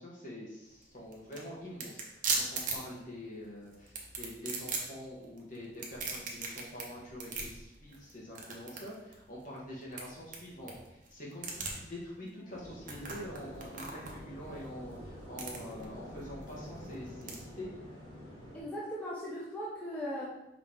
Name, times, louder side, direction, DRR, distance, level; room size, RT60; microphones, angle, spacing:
voice 1, 0.0-17.7, left 1 dB, 50° left, -5 dB, 1.4 m, -45 dB
sound 1, 0.6-17.4, right 4 dB, 50° right, 0.8 m, -40 dB
sound 2, 12.5-18.6, equal, 25° left, 1.4 m, -48 dB
voice 2, 18.5-20.2, equal, 10° left, -7 dB, 0.8 m, -38 dB
4.8 x 3.0 x 3.6 m, 0.88 s
head